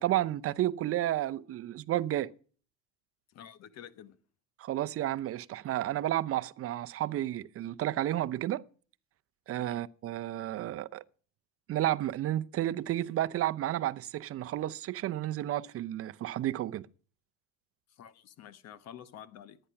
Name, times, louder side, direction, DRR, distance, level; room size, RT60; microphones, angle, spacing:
voice 1, 0.0-2.3 4.6-8.6 9.5-11.0 11.7-16.8, right 13 dB, 40° right, 0.7 m, -31 dB
voice 2, 3.3-4.2 9.6-9.9 17.9-19.6, left 9 dB, 50° left, 1.2 m, -50 dB
15.0 x 10.0 x 5.9 m
supercardioid pair, 105°, 34 cm